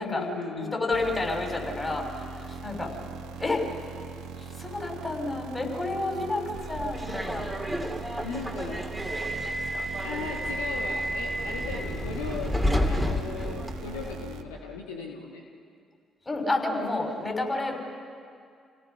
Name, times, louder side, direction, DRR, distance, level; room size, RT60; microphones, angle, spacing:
voice 1, 0.0-0.8 6.1-6.3 8.2-8.8 10.0-12.6 12.8-15.4, left 5 dB, 80° left, 0 dB, 1.5 m, -37 dB
voice 2, 0.6-2.1 2.5-2.9 3.4-3.6 4.6-7.4 16.3-17.8, left 2 dB, 25° left, 1 dB, 6.2 m, -29 dB
sound 1, 0.9-14.4, right 5 dB, 70° right, 1.2 m, -41 dB
Subway metro underground, 6.5-14.2, equal, 5° right, 2.5 m, -31 dB
29.0 x 17.5 x 5.7 m, 2.3 s
hypercardioid pair, 45°, 0 cm